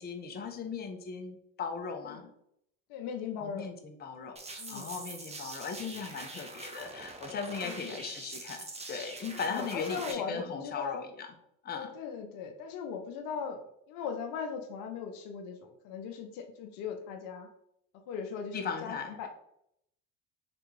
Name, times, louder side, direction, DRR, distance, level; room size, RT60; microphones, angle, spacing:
voice 1, 0.0-2.2 3.4-11.3 11.6-11.9 18.5-19.3, left 5 dB, 30° left, 4 dB, 0.5 m, -38 dB
voice 2, 2.9-3.7 4.6-4.9 7.6-8.1 9.4-11.0 11.7-13.6 13.9-17.5 18.1-19.3, left 6 dB, 70° left, 5 dB, 0.6 m, -39 dB
sound 1, 4.4-10.1, right 3 dB, 20° right, 0.6 m, -44 dB
3.3 x 2.5 x 3.1 m, 0.75 s
hypercardioid pair, 60°, 35 cm